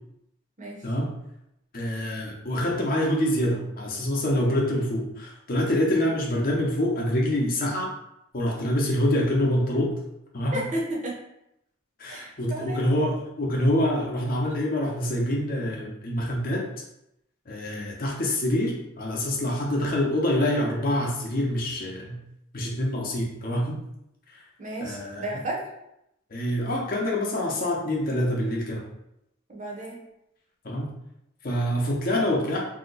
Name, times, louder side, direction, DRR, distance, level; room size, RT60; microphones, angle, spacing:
voice 1, 1.7-7.9 8.3-9.9 10.3-10.6 12.0-16.6 17.5-22.2 22.5-23.8 24.8-25.4 26.3-28.8 30.6-30.9 31.4-32.7, left 1 dB, 40° left, -2 dB, 0.7 m, -26 dB
voice 2, 10.5-11.2 12.1-12.8 24.6-25.7 29.5-30.0, right 1 dB, 35° right, -3 dB, 0.7 m, -33 dB
2.8 x 2.2 x 3.9 m, 0.82 s
head